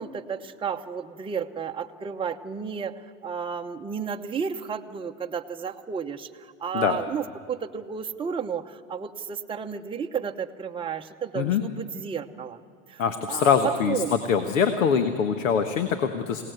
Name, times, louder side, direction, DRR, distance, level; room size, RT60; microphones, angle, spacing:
voice 1, 0.0-12.6 12.9-14.1, right 6 dB, 15° right, 3 dB, 1.0 m, -32 dB
voice 2, 13.0-14.0 14.3-16.4, left 7 dB, 85° left, 8 dB, 1.5 m, -23 dB
27.0 x 18.0 x 8.1 m, 2.2 s
hypercardioid pair, 110°, 38 cm